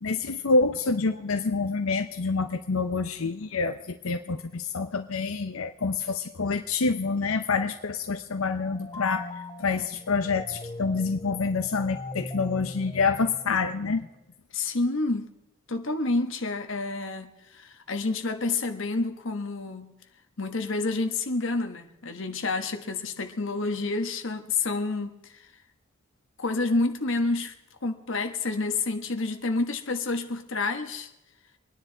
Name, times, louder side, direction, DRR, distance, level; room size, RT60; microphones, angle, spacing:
voice 1, 0.0-14.1, left 4 dB, 90° left, 0.7 m, -27 dB
sound 1, 8.5-14.0, left 2 dB, 20° left, 0.5 m, -40 dB
voice 2, 14.5-15.3 15.7-20.0 20.4-25.5 26.4-27.5 27.8-31.1, left 3 dB, 65° left, 1.2 m, -29 dB
25.0 x 10.0 x 3.9 m
head